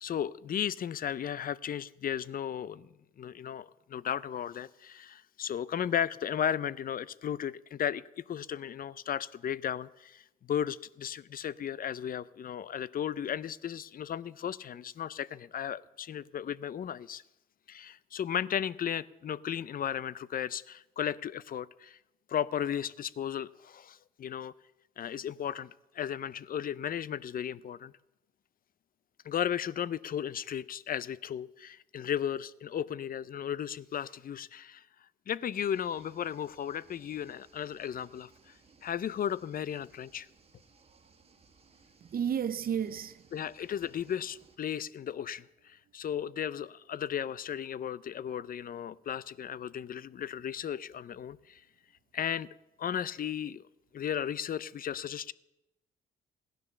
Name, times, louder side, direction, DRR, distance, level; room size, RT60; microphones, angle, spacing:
voice 1, 0.0-2.9 3.2-17.2 17.7-22.0 22.3-24.5 25.0-27.9 29.2-34.8 35.3-38.5 38.8-40.3 43.3-51.6 52.1-52.5 52.8-53.6 53.9-55.3, left 9 dB, 45° left, 0.5 m, -35 dB
sound 1, 35.5-44.6, right 4 dB, 30° right, 1.6 m, -62 dB
voice 2, 42.0-43.3, right 8 dB, 50° right, 0.8 m, -32 dB
16.0 x 10.5 x 6.8 m
cardioid pair, 90°, 20 cm